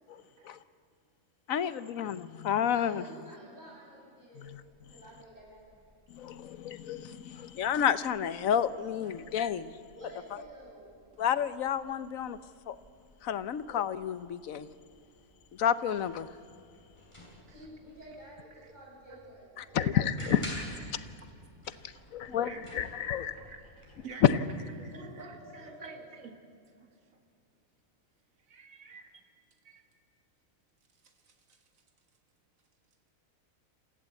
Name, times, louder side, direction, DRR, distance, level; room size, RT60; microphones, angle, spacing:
voice 1, 0.1-0.6 11.1-11.2 17.5-17.7 18.6-18.8 19.1-19.2 19.7-21.3 21.9-26.3 26.8-26.9 28.5-29.2 29.6-29.8 31.0-31.6, right 5 dB, 75° right, 5 dB, 2.2 m, -50 dB
voice 2, 1.5-3.0 6.1-9.7 11.2-12.4 12.7-12.8 13.2-14.7 15.6-16.3 19.6-20.4 22.1-22.5 22.8-23.3 24.2-24.4, left 9 dB, 75° left, 15 dB, 1.2 m, -29 dB
voice 3, 2.7-4.5 4.9-5.7 9.0-9.2 9.9-10.9 17.5-19.8 24.9-26.0, right 1 dB, 30° right, -5 dB, 7.9 m, -50 dB
sound 1, 4.4-24.1, equal, 20° left, 5.6 m, -53 dB
28.0 x 15.0 x 8.3 m, 2.5 s
omnidirectional pair, 1.4 m